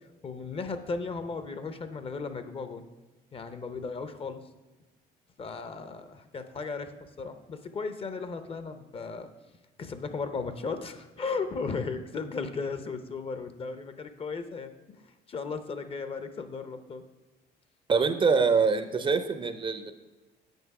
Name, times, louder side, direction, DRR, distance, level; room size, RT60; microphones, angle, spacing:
voice 1, 0.2-2.8 3.3-4.4 5.4-9.3 9.8-15.0 15.3-17.0, left 4 dB, 35° left, 10 dB, 0.6 m, -36 dB
voice 2, 17.9-19.9, right 5 dB, 30° right, 10 dB, 0.5 m, -24 dB
8.0 x 5.3 x 4.7 m, 1.2 s
cardioid pair, 110°, 17 cm